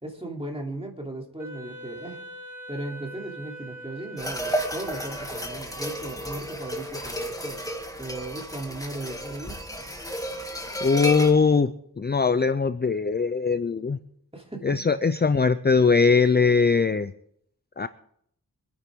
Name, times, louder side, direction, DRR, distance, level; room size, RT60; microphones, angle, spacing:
voice 1, 0.0-2.2 2.7-7.6 8.0-9.6 14.3-15.0, right 1 dB, 15° right, 0 dB, 2.9 m, -37 dB
Wind instrument woodwind instrument, 1.4-5.9, equal, 50° right, 4.1 m, -43 dB
sound 1, 4.2-11.3, equal, 10° left, 1.8 m, -32 dB
voice 2, 10.8-14.0 14.6-17.1 17.8-17.9, left 5 dB, 25° left, 13 dB, 0.5 m, -21 dB
25.0 x 10.0 x 3.7 m, 0.69 s
wide cardioid pair, 80°, 38 cm